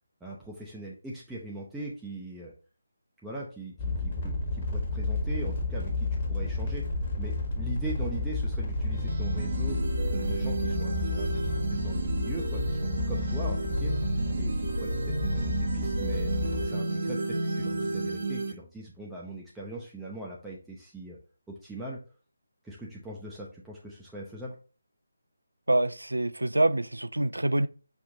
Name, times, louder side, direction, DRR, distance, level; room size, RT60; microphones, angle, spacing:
voice 1, 0.2-2.5 3.2-6.9 7.2-9.8 10.1-14.0 14.4-16.3 16.6-21.2 21.5-22.0 22.6-24.6, right 2 dB, 5° right, 0.5 m, -41 dB
sound 1, 3.8-16.7, left 2 dB, 35° left, 1.2 m, -31 dB
sound 2, 8.9-18.5, right 3 dB, 45° right, 0.7 m, -32 dB
voice 2, 25.7-27.7, right 2 dB, 75° right, 0.3 m, -26 dB
5.3 x 2.5 x 3.7 m
figure-of-eight pair, 150°, 0 cm